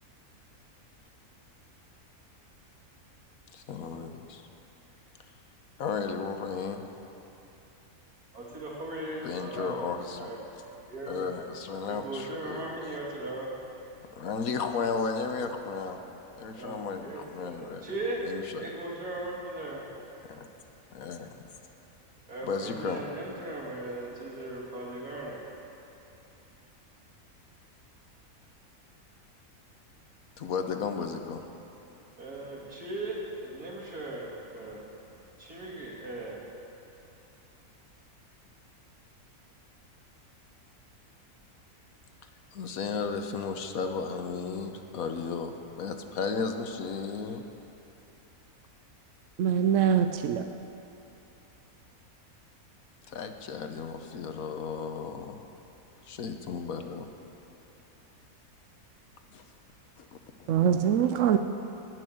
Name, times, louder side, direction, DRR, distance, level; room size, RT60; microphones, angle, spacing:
voice 1, 3.5-4.4 5.8-6.8 9.2-10.3 11.1-12.7 14.1-16.0 16.4-17.9 18.2-18.6 20.3-20.5 20.9-21.3 22.5-23.0 30.4-31.4 42.5-47.4 53.1-55.4 56.0-57.1 59.3-59.4 60.0-60.1 60.4-60.5, left 5 dB, 70° left, 7 dB, 1.3 m, -34 dB
voice 2, 8.3-9.8 10.2-10.4 10.9-11.3 11.8-13.5 16.5-18.3 18.6-19.9 22.3-25.4 32.2-34.8 35.4-36.4, right 2 dB, 85° right, -4 dB, 3.1 m, -38 dB
voice 3, 49.4-50.4 60.5-61.4, right 8 dB, 65° right, 7 dB, 0.8 m, -23 dB
17.0 x 6.3 x 9.2 m, 2.9 s
omnidirectional pair, 1.6 m